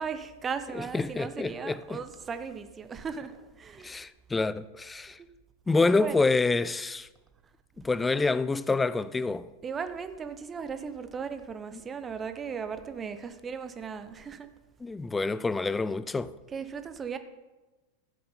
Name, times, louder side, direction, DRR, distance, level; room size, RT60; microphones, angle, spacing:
voice 1, 0.0-4.0 5.0-5.3 5.9-6.3 9.6-14.5 16.5-17.2, right 6 dB, 20° right, 0.7 m, -37 dB
voice 2, 0.7-2.0 3.8-5.2 5.7-7.1 7.8-9.5 14.8-16.3, left 3 dB, 10° left, 0.4 m, -27 dB
14.0 x 7.7 x 4.1 m
figure-of-eight pair, 90°, 0 cm